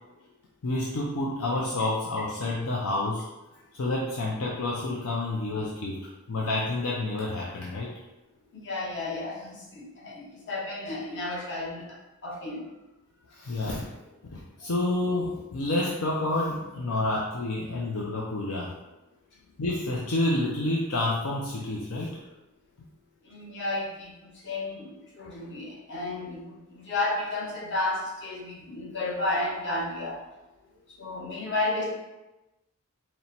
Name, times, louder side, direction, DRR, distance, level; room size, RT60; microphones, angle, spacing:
voice 1, 0.6-3.2 3.8-6.0 6.3-7.9 13.3-13.9 14.3-18.7 19.6-22.2, left 2 dB, 70° left, -3 dB, 0.5 m, -29 dB
voice 2, 8.5-12.0 12.2-12.6 23.3-30.2 31.0-31.9, left 2 dB, 50° left, -4 dB, 1.0 m, -32 dB
4.3 x 2.1 x 4.0 m, 1.0 s
head